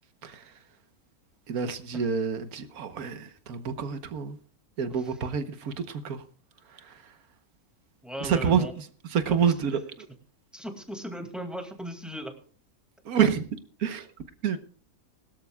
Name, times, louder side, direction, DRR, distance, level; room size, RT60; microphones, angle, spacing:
voice 1, 1.5-4.4 4.8-6.2 8.2-8.7 9.1-10.1 13.1-13.5 13.8-14.0 14.4-14.6, right 7 dB, 85° right, 1.5 m, -27 dB
voice 2, 4.9-5.3 8.0-8.7 9.3-9.4 10.5-12.3, equal, ahead, 2.2 m, -37 dB
21.5 x 13.0 x 2.3 m
omnidirectional pair, 1.5 m